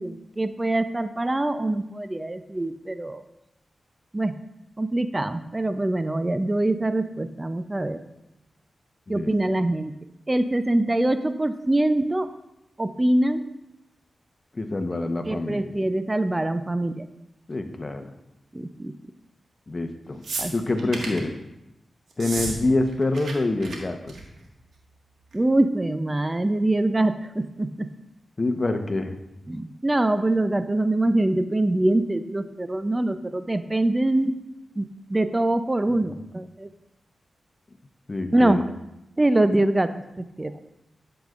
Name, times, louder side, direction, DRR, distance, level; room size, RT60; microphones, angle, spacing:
voice 1, 0.0-3.2 4.1-4.3 4.8-8.0 9.1-10.0 10.3-12.3 12.8-13.5 15.2-17.1 18.5-18.9 20.4-20.5 25.3-27.9 29.5-34.4 34.8-36.7 38.3-38.6 39.2-39.9 40.2-40.5, right 1 dB, 25° right, 10 dB, 0.6 m, -24 dB
voice 2, 14.5-15.7 17.5-18.1 19.7-20.2 20.5-21.3 22.2-24.1 28.4-29.1 38.1-38.6, left 2 dB, 40° left, 7 dB, 1.0 m, -26 dB
sound 1, 20.2-21.2 22.1-22.6 22.8-23.3 23.6-23.8 24.1-24.4 25.3-25.4, right 3 dB, 75° right, 1.8 m, -32 dB
11.5 x 8.0 x 2.5 m, 0.88 s
cardioid pair, 40°, 0 cm